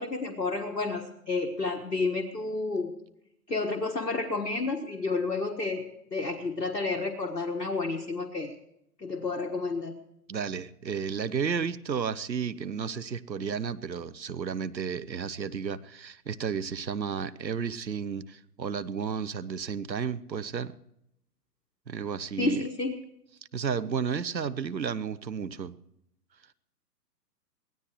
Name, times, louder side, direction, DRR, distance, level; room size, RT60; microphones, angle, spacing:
voice 1, 0.0-2.9 3.5-5.8 6.1-8.5 9.0-10.0 22.4-23.0, left 3 dB, 80° left, 2 dB, 1.6 m, -30 dB
voice 2, 10.3-20.7 21.9-22.6 23.5-25.7, right 6 dB, 85° right, 15 dB, 0.9 m, -32 dB
23.0 x 16.5 x 3.1 m, 0.80 s
figure-of-eight pair, 120°, 50 cm